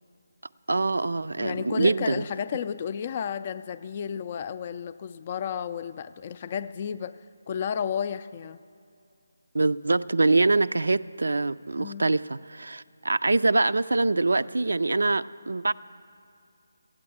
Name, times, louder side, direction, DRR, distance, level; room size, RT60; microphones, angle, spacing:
voice 1, 0.7-2.2 9.5-15.7, right 3 dB, 85° right, 13 dB, 0.3 m, -24 dB
voice 2, 1.4-7.2 7.5-8.6 11.8-12.1, left 8 dB, 35° left, 13 dB, 0.4 m, -32 dB
14.0 x 8.9 x 8.5 m, 2.5 s
figure-of-eight pair, 160°, 0 cm